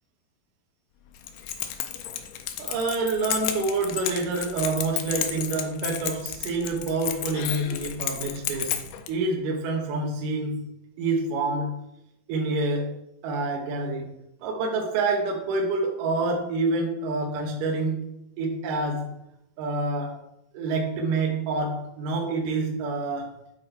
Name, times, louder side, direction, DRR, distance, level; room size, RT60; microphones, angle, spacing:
Keys jangling, 1.2-9.1, left 10 dB, 85° left, 1.9 m, -32 dB
voice 1, 2.6-8.8 9.1-10.7 11.0-11.8 12.3-14.1 14.4-18.1 18.4-19.1 19.6-20.2 20.5-23.3, right 3 dB, 70° right, 2.2 m, -27 dB
7.9 x 4.2 x 4.4 m
omnidirectional pair, 4.5 m